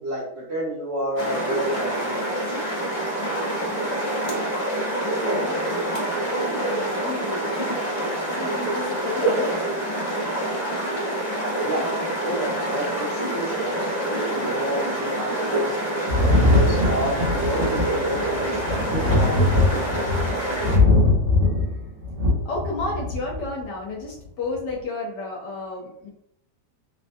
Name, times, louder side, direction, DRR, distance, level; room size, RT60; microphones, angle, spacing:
voice 1, 0.0-2.6 11.6-11.9 12.2-14.0 14.3-15.8 16.2-20.2, right 1 dB, 60° right, -5 dB, 0.7 m, -30 dB
sound 1, 1.2-20.8, right 1 dB, 50° left, 0.4 m, -26 dB
voice 2, 5.3-5.8 6.3-7.5 8.3-9.7 21.6-21.8 22.4-26.1, left 3 dB, 80° left, -2 dB, 1.3 m, -32 dB
Thunder, 16.1-23.4 24.5-24.6, left 2 dB, 75° right, 1.8 m, -21 dB
3.8 x 2.1 x 2.6 m, 0.73 s
omnidirectional pair, 1.9 m